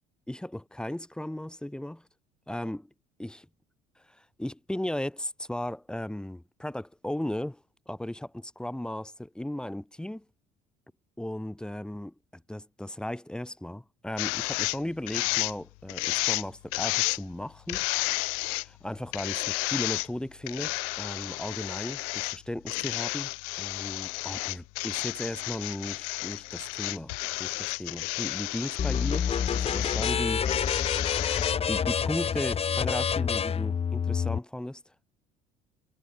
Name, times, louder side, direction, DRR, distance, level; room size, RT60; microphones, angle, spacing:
voice 1, 0.3-2.0 2.5-2.9 3.2-3.5 4.1-10.2 11.2-17.9 18.2-30.5 31.7-34.8, left 1 dB, 5° left, 2.5 m, -36 dB
sound 1, 14.2-14.8 15.1-15.5 15.9-16.4 16.7-17.2 17.7-18.7 19.1-20.1 20.5-22.4 22.7-30.2 30.4-31.5, left 40 dB or more, 80° left, 0.9 m, -32 dB
sound 2, 28.8-34.4, left 7 dB, 35° left, 1.8 m, -28 dB
supercardioid pair, 85°, 17 cm